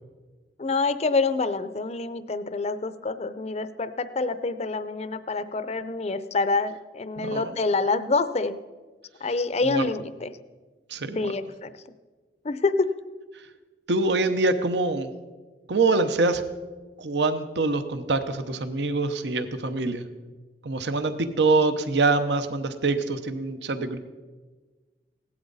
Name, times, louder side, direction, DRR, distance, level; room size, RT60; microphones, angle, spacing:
voice 1, 0.6-8.6 9.2-10.3 11.2-11.7 12.4-12.9, left 3 dB, 40° left, 12 dB, 0.5 m, -26 dB
voice 2, 7.2-7.5 9.6-9.8 10.9-11.3 13.3-13.4 13.9-15.1 15.7-16.4 17.0-20.0 20.6-24.0, right 3 dB, 75° right, 10 dB, 0.8 m, -25 dB
17.0 x 12.0 x 4.0 m, 1.3 s
head